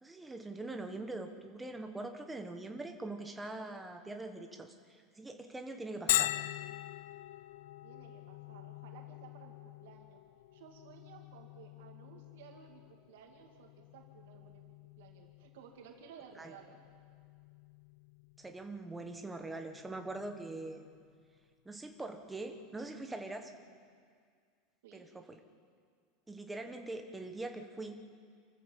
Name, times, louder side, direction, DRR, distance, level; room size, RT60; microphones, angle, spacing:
voice 1, 0.0-6.3 16.4-16.5 18.4-20.8 21.6-23.5 24.9-25.4 26.3-28.0, right 2 dB, 5° right, 5 dB, 1.2 m, -43 dB
Bell, 6.1-21.5, left 15 dB, 80° left, 0.4 m, -42 dB
voice 2, 7.8-10.2 10.5-16.8 24.8-25.1, right 7 dB, 75° right, 2 dB, 2.6 m, -56 dB
28.0 x 14.0 x 7.5 m, 2.1 s
supercardioid pair, 175°, 0 cm